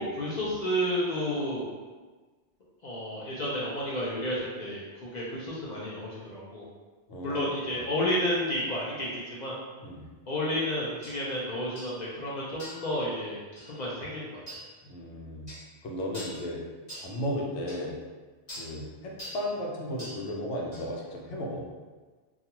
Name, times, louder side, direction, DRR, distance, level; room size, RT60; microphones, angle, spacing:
voice 1, 0.0-1.6 2.8-6.7 7.2-9.6 10.3-13.4 13.7-14.3, equal, 55° left, -6 dB, 0.5 m, -31 dB
voice 2, 7.1-7.8 9.8-10.0 14.8-15.5 15.8-16.6 17.0-17.9 18.6-21.6, equal, 90° left, -1 dB, 0.9 m, -35 dB
sound 1, 11.0-11.2 11.8-12.0 12.6-12.9 13.6-13.7 14.5-14.6 15.5-15.7 16.1-16.4 16.9-17.1 17.7-17.8 18.5-18.7 19.2-19.4 20.0-20.2 20.7-20.9, equal, 30° left, 0.9 m, -42 dB
2.3 x 2.3 x 2.8 m, 1.4 s
omnidirectional pair, 1.2 m